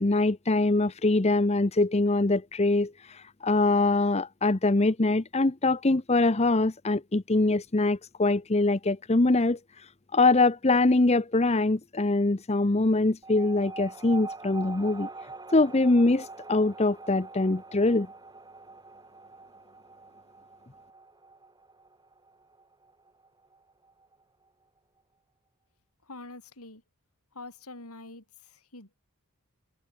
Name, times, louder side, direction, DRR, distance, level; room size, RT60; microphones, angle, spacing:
voice 1, 0.0-9.6 10.1-15.1 15.5-18.1, left 2 dB, 30° left, 0.8 m, -23 dB
sound 1, 13.2-24.1, right 3 dB, 20° right, 6.8 m, -44 dB
voice 2, 26.0-26.8 27.3-29.0, left 2 dB, 80° left, 5.6 m, -45 dB
head